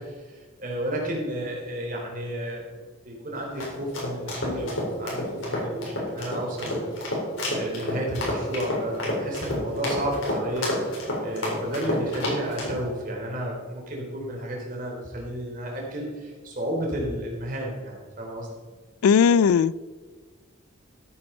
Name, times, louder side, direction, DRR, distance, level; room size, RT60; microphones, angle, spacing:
voice 1, 0.0-6.9 7.4-18.5, equal, 40° right, -1 dB, 3.2 m, -32 dB
sound 1, 3.3-12.8, left 1 dB, 65° left, 4.1 m, -29 dB
voice 2, 19.0-19.8, left 6 dB, 90° left, 21 dB, 0.3 m, -18 dB
13.5 x 8.9 x 4.4 m, 1.5 s
head